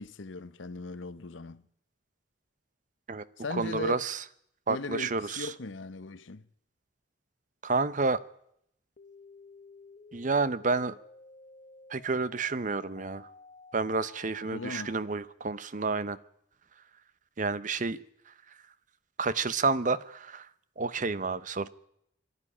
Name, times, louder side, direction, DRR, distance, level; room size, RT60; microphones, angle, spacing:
voice 1, 0.0-1.7 3.4-4.0 4.7-6.4 14.5-14.9, left 3 dB, 85° left, 0.8 m, -38 dB
voice 2, 3.5-4.2 4.7-5.5 7.6-8.2 10.1-11.0 11.9-13.3 13.7-16.2 17.4-18.3 19.2-20.5 20.8-21.7, right 4 dB, 40° right, 0.8 m, -30 dB
sound 1, 9.0-15.0, left 4 dB, 40° left, 0.9 m, -53 dB
23.5 x 12.5 x 9.9 m
head